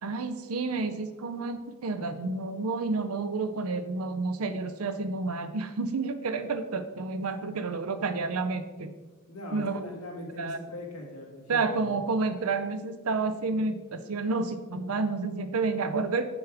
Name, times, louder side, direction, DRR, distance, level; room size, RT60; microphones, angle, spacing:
voice 1, 0.0-8.9 9.5-9.8 10.4-10.6 11.5-16.3, right 3 dB, 80° right, 10 dB, 0.6 m, -30 dB
voice 2, 9.3-12.0, left 1 dB, 80° left, -1 dB, 1.9 m, -41 dB
7.1 x 7.0 x 3.4 m, 1.3 s
head